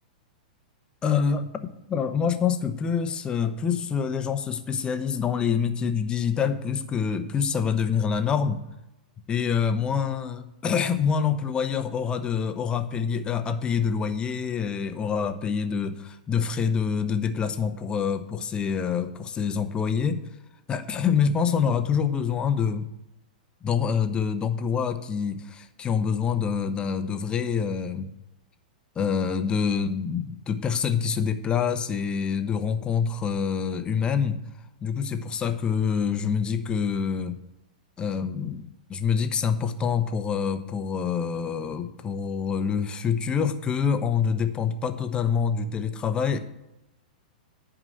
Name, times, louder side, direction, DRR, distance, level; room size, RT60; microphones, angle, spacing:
voice 1, 1.0-1.5 1.9-8.6 9.3-20.3 20.7-22.9 23.6-28.1 29.0-34.4 34.8-37.4 38.0-46.4, left 6 dB, 20° left, 9 dB, 0.9 m, -26 dB
11.0 x 4.9 x 7.6 m, 0.91 s
hypercardioid pair, 120°, 5 cm